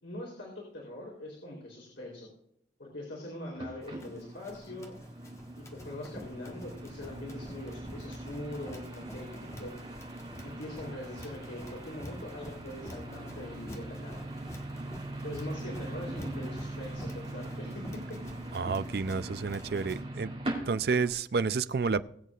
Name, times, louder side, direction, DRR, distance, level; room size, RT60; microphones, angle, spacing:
voice 1, 0.0-2.3 2.8-4.9 5.6-9.7 10.4-14.3 15.2-18.2, left 1 dB, 90° left, 3.5 m, -42 dB
sound 1, 3.6-21.1, right 1 dB, 30° right, 3.3 m, -41 dB
Run, 3.8-20.0, equal, 15° left, 1.3 m, -49 dB
voice 2, 18.5-20.3 20.7-22.0, right 4 dB, 55° right, 0.4 m, -30 dB
20.5 x 8.3 x 2.4 m
head